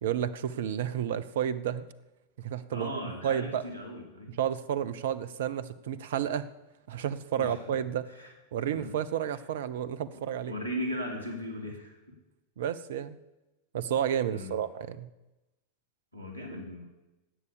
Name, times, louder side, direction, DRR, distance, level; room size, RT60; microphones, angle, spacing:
voice 1, 0.0-1.9 2.4-2.9 3.2-3.6 4.4-6.5 6.9-8.0 8.5-10.5 12.6-13.2 13.7-15.1, right 9 dB, 55° right, 15 dB, 0.8 m, -31 dB
voice 2, 2.7-4.3 7.4-7.7 8.1-8.3 8.7-8.9 9.2-9.4 10.1-12.2 14.3-14.6 16.1-16.9, equal, 90° left, 1 dB, 3.0 m, -38 dB
12.0 x 8.3 x 8.6 m, 1.0 s
figure-of-eight pair, 90°, 0 cm